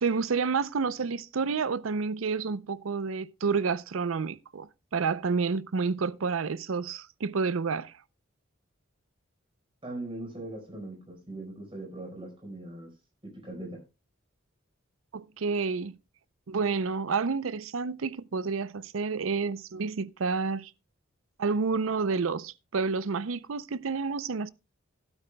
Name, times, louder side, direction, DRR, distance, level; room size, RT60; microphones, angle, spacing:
voice 1, 0.0-7.9 15.1-16.0 16.5-20.7 21.4-24.5, right 5 dB, 85° right, 0.6 m, -29 dB
voice 2, 9.8-12.9 13.2-13.8, right 2 dB, 25° right, 4.8 m, -40 dB
15.0 x 12.5 x 2.2 m
head